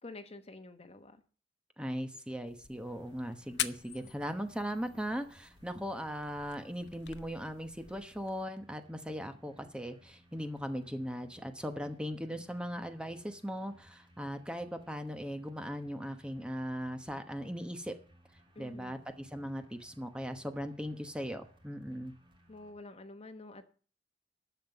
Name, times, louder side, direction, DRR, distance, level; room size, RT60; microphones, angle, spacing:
voice 1, 0.0-1.2 18.5-18.9 22.5-23.6, left 2 dB, 35° left, 9 dB, 1.1 m, -48 dB
voice 2, 1.8-18.0 18.6-22.1, equal, 5° right, 7 dB, 1.0 m, -39 dB
sound 1, 2.5-8.5, left 11 dB, 75° left, 0.8 m, -44 dB
sound 2, 2.8-22.7, equal, 30° right, 3.0 m, -64 dB
11.5 x 7.3 x 7.1 m, 0.40 s
head